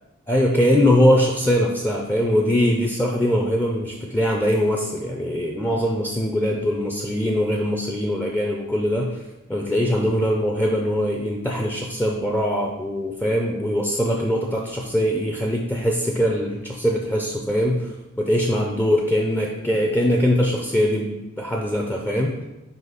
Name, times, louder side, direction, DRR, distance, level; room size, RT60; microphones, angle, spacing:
voice 1, 0.3-9.2 9.5-17.9 18.2-22.4, equal, 10° left, 0 dB, 0.4 m, -22 dB
5.0 x 4.1 x 4.9 m, 0.98 s
head